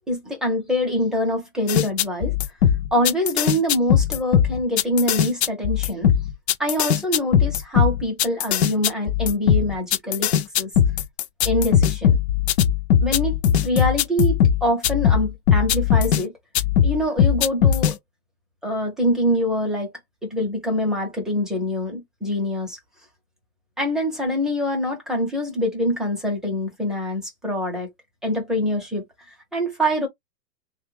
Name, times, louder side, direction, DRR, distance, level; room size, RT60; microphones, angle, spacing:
voice 1, 0.1-2.3 2.9-6.1 6.6-10.3 10.6-10.7 11.4-12.2 13.0-13.3 13.6-16.3 16.8-18.0 18.6-19.9 20.2-22.8 23.8-27.9 28.2-29.0 29.5-30.1, left 1 dB, ahead, 0.6 m, -24 dB
sound 1, 1.7-16.2 16.5-17.9, left 9 dB, 45° left, 0.5 m, -19 dB
3.2 x 2.3 x 3.1 m
hypercardioid pair, 135°, 50 cm